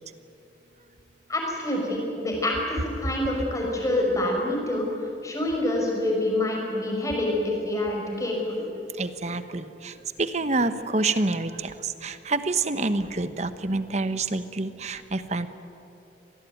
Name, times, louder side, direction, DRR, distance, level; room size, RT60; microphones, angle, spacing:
voice 1, 1.3-4.8 5.2-8.6, left 1 dB, 20° left, -1 dB, 5.7 m, -26 dB
voice 2, 9.0-15.5, right 3 dB, 40° right, 11 dB, 1.1 m, -27 dB
26.0 x 19.0 x 9.4 m, 2.9 s
head